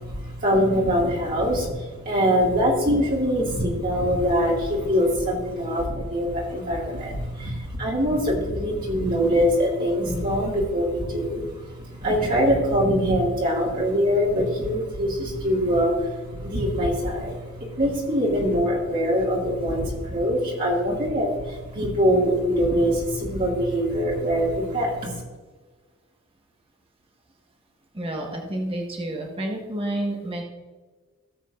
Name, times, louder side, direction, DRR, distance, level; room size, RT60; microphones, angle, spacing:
voice 1, 0.0-1.7 2.0-25.2, equal, 40° right, -5 dB, 2.3 m, -23 dB
voice 2, 27.9-30.4, right 1 dB, 25° right, 1 dB, 1.5 m, -29 dB
17.5 x 7.9 x 2.6 m, 1.3 s
head